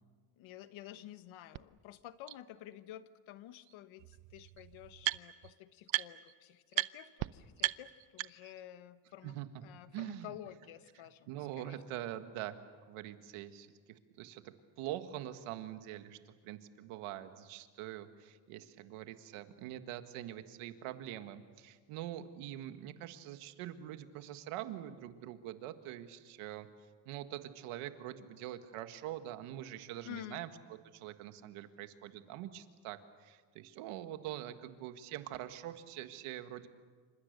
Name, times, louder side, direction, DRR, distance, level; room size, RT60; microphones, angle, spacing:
voice 1, 0.4-9.4 9.6-11.3 11.6-12.1 30.0-30.4, left 12 dB, 70° left, 11 dB, 1.4 m, -51 dB
sound 1, 1.5-1.6 2.3-2.4 3.7-3.8 4.0-5.5 5.9-6.3 6.7-6.9 7.2-7.3 7.6-8.6, right 18 dB, 65° right, 0.8 m, -36 dB
voice 2, 9.9-10.3 11.3-12.6 12.9-26.7 27.1-36.7, right 12 dB, 85° right, 8 dB, 1.8 m, -44 dB
28.5 x 26.0 x 6.7 m, 1.5 s
cardioid pair, 140°, 49 cm